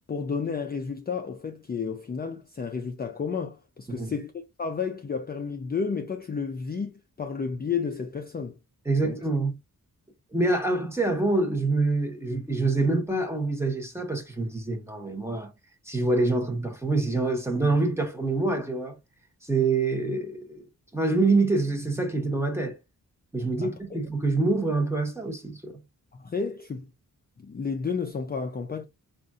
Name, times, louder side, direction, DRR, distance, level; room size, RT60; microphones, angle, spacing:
voice 1, 0.1-4.3 4.6-8.6 9.0-9.2 23.6-24.0 26.1-26.9 27.4-28.8, left 5 dB, 30° left, 0.4 m, -32 dB
voice 2, 8.8-9.6 10.3-15.5 15.8-18.9 19.4-20.6 20.9-22.8 23.3-25.8, right 3 dB, 5° right, 1.1 m, -26 dB
5.0 x 2.5 x 2.4 m
wide cardioid pair, 125°, 35 cm